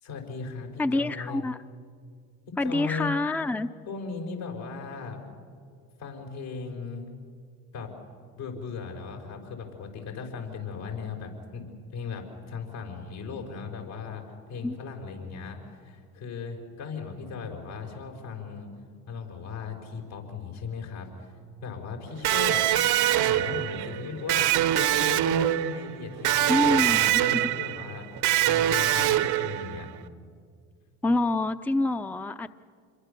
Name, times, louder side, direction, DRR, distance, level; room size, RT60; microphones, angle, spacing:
voice 1, 0.0-1.4 2.5-3.2 3.9-5.2 6.0-7.0 7.7-7.9 8.4-11.6 11.9-14.2 14.5-18.7 19.1-21.3 21.6-22.6 23.1-28.1 28.5-29.9, left 5 dB, 75° left, 1 dB, 5.4 m, -37 dB
voice 2, 0.8-1.6 2.6-3.7 14.6-14.8 26.5-27.2 31.0-32.5, left 2 dB, 5° left, 11 dB, 0.7 m, -26 dB
Electric guitar, 22.2-29.9, right 13 dB, 60° right, 1.0 m, -24 dB
27.5 x 22.5 x 6.9 m, 2.2 s
hypercardioid pair, 60°, 43 cm